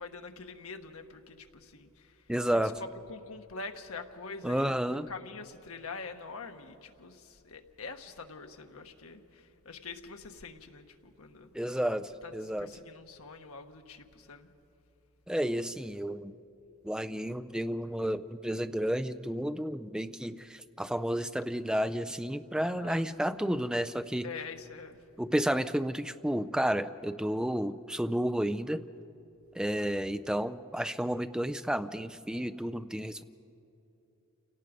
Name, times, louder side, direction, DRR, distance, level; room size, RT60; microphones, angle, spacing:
voice 1, 0.0-11.5 12.2-12.3 12.6-14.5 22.6-23.1 24.2-25.0, left 4 dB, 80° left, 5 dB, 1.3 m, -45 dB
voice 2, 2.3-2.7 4.4-5.1 11.5-12.7 15.3-16.3 16.8-24.3 25.2-28.9 29.6-33.2, equal, 5° right, 11 dB, 0.4 m, -31 dB
28.5 x 17.5 x 5.1 m, 2.9 s
head